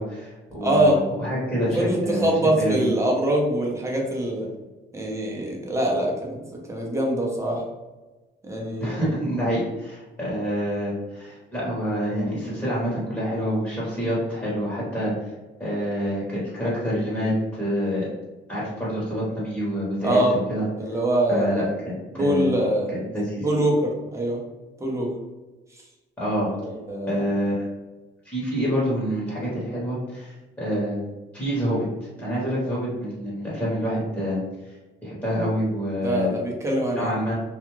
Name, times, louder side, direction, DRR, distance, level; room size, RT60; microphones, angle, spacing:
voice 1, 0.0-2.3 2.5-2.9 8.8-15.1 15.6-18.1 18.5-20.7 21.3-21.6 22.1-22.6 22.9-23.5 26.2-26.5 27.1-27.6 28.2-31.0 31.3-31.8 32.2-34.4 35.0-36.3 36.9-37.3, equal, 10° left, -8 dB, 1.2 m, -27 dB
voice 2, 0.6-1.0 1.7-4.5 4.9-6.4 6.7-7.6 8.4-9.0 14.0-14.1 20.0-20.3 20.8-21.7 22.1-22.9 23.4-24.4 24.8-25.1 26.6-27.2 36.0-37.1, right 1 dB, 15° right, -2 dB, 0.8 m, -23 dB
2.4 x 2.4 x 3.0 m, 1.2 s
cardioid pair, 90°, 20 cm